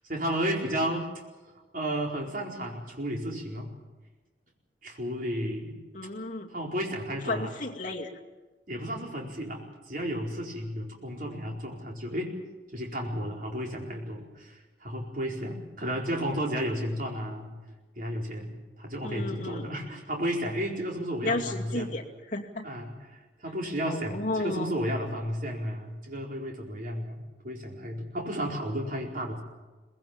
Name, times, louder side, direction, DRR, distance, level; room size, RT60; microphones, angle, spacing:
voice 1, 0.1-1.1 1.7-3.7 4.8-5.8 6.5-7.5 8.7-12.3 12.7-17.5 18.0-21.9 22.6-29.4, equal, 45° right, 0 dB, 4.6 m, -33 dB
voice 2, 5.9-6.5 7.3-8.1 19.0-19.7 21.2-22.6 23.9-24.8, left 2 dB, 45° left, 0 dB, 2.4 m, -33 dB
23.5 x 20.0 x 7.3 m, 1.2 s
head